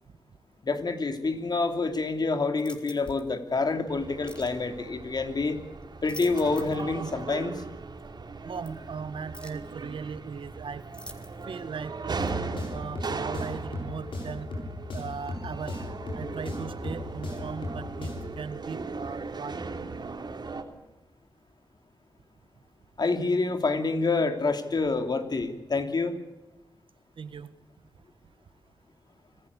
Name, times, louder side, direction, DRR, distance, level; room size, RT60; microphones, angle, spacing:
voice 1, 0.6-5.6 6.0-7.6 23.0-26.2, left 3 dB, 55° left, 7 dB, 3.0 m, -27 dB
sound 1, 2.6-3.3 4.3-4.6 5.8-6.9 7.2-7.3 8.6-8.7 9.3-9.7 10.9-11.6 12.3-12.4, left 1 dB, 10° left, 3.4 m, -46 dB
sound 2, 3.9-20.6, right 4 dB, 55° right, 3.1 m, -38 dB
voice 2, 8.4-10.8 11.4-12.3 12.7-14.5 14.9-15.8 16.1-19.7 27.2-27.5, right 6 dB, 80° right, 12 dB, 1.6 m, -38 dB
sound 3, 12.2-18.4, left 2 dB, 85° left, 7.4 m, -37 dB
25.5 x 16.0 x 8.5 m, 1.0 s
cardioid pair, 65°, 9 cm